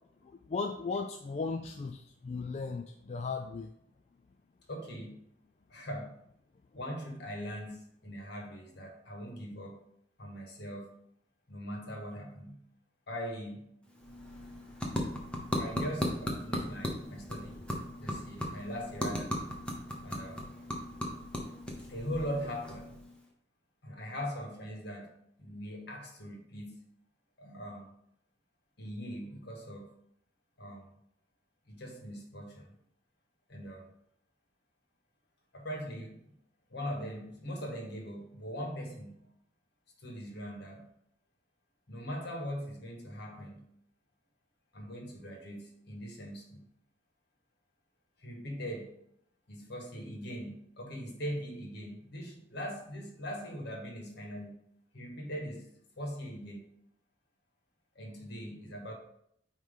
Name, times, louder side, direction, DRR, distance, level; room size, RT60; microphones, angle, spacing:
voice 1, 0.2-3.7, left 4 dB, 35° left, 4 dB, 0.4 m, -36 dB
voice 2, 4.7-5.2 5.7-6.1 6.7-9.8 10.2-10.9 11.5-12.6 13.1-13.6 15.5-17.6 18.0-19.4 20.0-20.4 21.9-23.0 23.8-25.1 25.4-26.8 27.4-27.9 28.8-29.9 30.6-30.9 31.7-32.7 33.5-33.9 35.5-36.3 36.7-39.2 40.0-40.8 41.9-43.6 44.7-46.6 48.2-48.9 49.5-54.5 54.9-55.7 56.0-56.6 57.9-58.9, equal, 60° left, 0 dB, 1.7 m, -41 dB
sound 1, 13.8-23.3, equal, 5° left, 1.0 m, -37 dB
9.1 x 3.2 x 3.7 m, 0.73 s
head